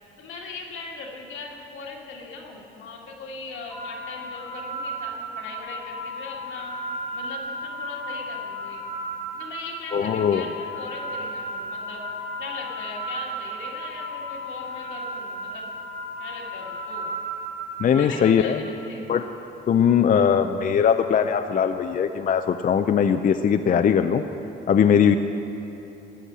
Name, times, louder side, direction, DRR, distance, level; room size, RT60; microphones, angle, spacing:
voice 1, 0.2-6.7 7.1-8.8 9.3-12.0 12.4-15.7 16.2-17.1 17.9-19.0, left 3 dB, 85° left, -2 dB, 2.1 m, -39 dB
sound 1, 3.7-18.8, equal, 75° right, 2.3 m, -34 dB
voice 2, 9.9-10.4 17.8-18.6 19.1-19.3 19.7-24.2 24.7-25.2, left 7 dB, 45° left, 8 dB, 0.5 m, -20 dB
13.5 x 8.2 x 7.5 m, 3.0 s
cardioid pair, 90°, 20 cm